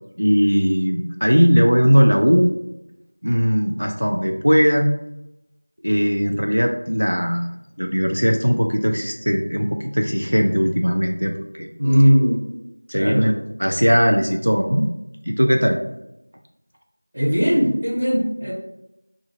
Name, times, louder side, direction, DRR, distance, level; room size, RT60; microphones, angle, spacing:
voice 1, 0.2-2.5 3.2-4.9 5.8-7.5 7.8-11.7 12.9-14.9 15.3-15.8, equal, 75° right, 2 dB, 0.4 m, -19 dB
voice 2, 11.8-12.4 13.0-13.2 17.1-18.5, equal, 25° right, -7 dB, 0.8 m, -18 dB
2.6 x 2.4 x 4.1 m, 0.89 s
figure-of-eight pair, 180°, 0 cm